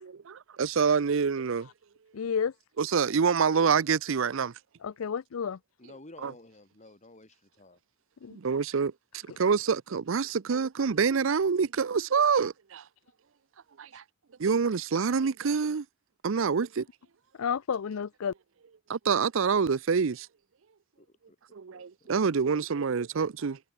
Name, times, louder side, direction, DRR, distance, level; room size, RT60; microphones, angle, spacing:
voice 1, 0.6-1.7 2.8-4.5 6.2-6.3 8.3-8.9 9.4-12.8 13.8-14.0 14.4-15.8 16.2-16.9 18.9-20.3 21.5-23.6, right 5 dB, 70° right, 0.5 m, -26 dB
voice 2, 2.1-2.5 4.8-5.6 8.2-8.4 17.4-18.3, left 7 dB, 85° left, 0.5 m, -31 dB
voice 3, 5.8-7.8 13.9-14.0 21.0-21.4 21.7-22.1, left 2 dB, 35° left, 3.4 m, -53 dB
head